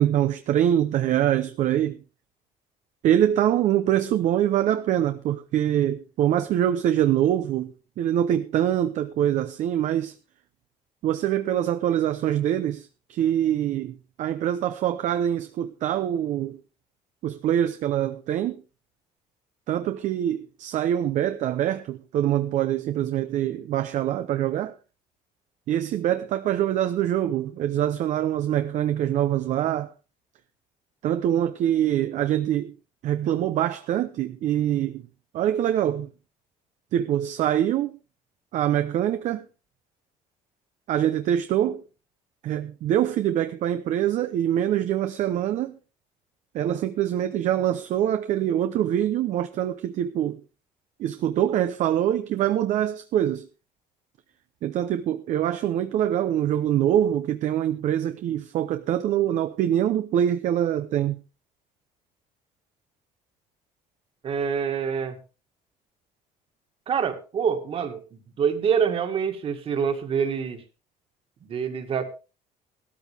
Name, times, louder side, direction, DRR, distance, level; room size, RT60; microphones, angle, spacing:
voice 1, 0.0-2.0 3.0-10.2 11.0-16.6 17.2-18.6 19.7-24.8 25.7-29.9 31.0-32.8 33.0-35.0 35.3-36.1 36.9-38.0 38.5-39.4 40.9-41.8 42.4-45.8 46.5-50.4 51.0-53.5 54.6-61.2, right 11 dB, 55° right, 0.8 m, -24 dB
voice 2, 64.2-65.2 66.9-70.6 71.4-72.0, right 7 dB, 40° right, 2.1 m, -26 dB
16.0 x 13.0 x 3.5 m
cardioid pair, 160°, 15 cm